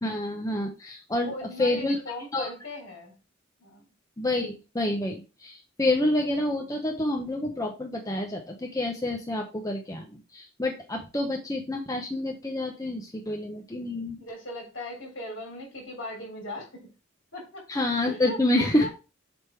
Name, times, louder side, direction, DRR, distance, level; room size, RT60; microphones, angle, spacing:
voice 1, 0.0-1.3 1.6-2.0 2.3-2.5 4.2-14.2 17.7-18.9, left 1 dB, 15° left, 1 dB, 0.8 m, -28 dB
voice 2, 1.2-3.1 3.6-3.8 14.2-16.9 17.3-17.6 18.1-18.9, left 1 dB, 65° left, 1 dB, 3.7 m, -38 dB
7.8 x 3.7 x 4.5 m, 0.31 s
head